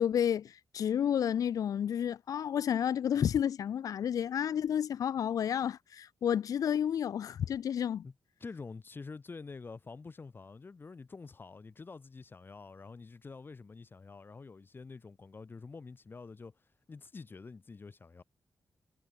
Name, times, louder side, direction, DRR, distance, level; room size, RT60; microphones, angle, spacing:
voice 1, 0.0-8.1, left 9 dB, 65° left, 0.4 m, -31 dB
voice 2, 8.4-18.2, left 4 dB, 35° left, 2.5 m, -47 dB
wide cardioid pair, 120°, 6 cm